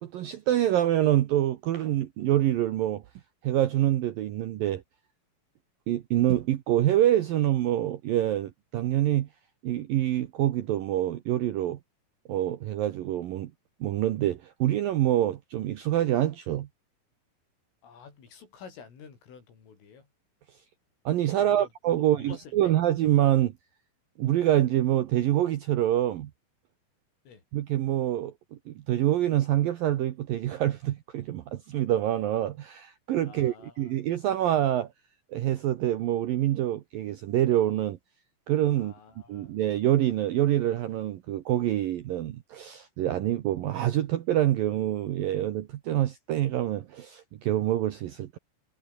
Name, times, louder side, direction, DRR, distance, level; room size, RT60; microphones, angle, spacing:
voice 1, 0.0-3.0 3.4-4.8 5.9-9.3 9.6-11.8 12.3-13.5 13.8-16.7 21.1-23.5 24.2-26.3 27.5-34.9 35.3-38.0 38.5-38.9 39.3-48.4, right 12 dB, 75° right, 2.1 m, -26 dB
voice 2, 17.8-20.1 21.4-21.7 22.2-22.4 27.3-27.4 33.3-33.9 38.8-39.5, left 6 dB, 85° left, 8.5 m, -49 dB
omnidirectional pair, 5.6 m